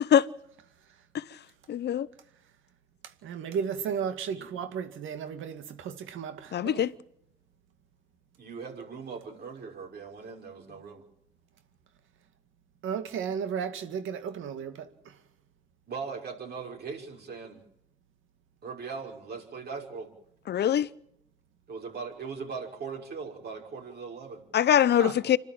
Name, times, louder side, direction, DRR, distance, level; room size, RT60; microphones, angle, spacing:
voice 1, 1.7-2.1 6.5-6.9 20.5-20.9 24.5-25.4, left 10 dB, 60° left, 0.8 m, -23 dB
voice 2, 3.2-6.8 12.8-15.2 25.0-25.1, right 7 dB, 80° right, 2.2 m, -34 dB
voice 3, 8.4-11.0 15.9-17.6 18.6-20.1 21.7-24.4, right 5 dB, 55° right, 5.9 m, -39 dB
26.5 x 12.0 x 9.0 m
cardioid pair, 90°, 20 cm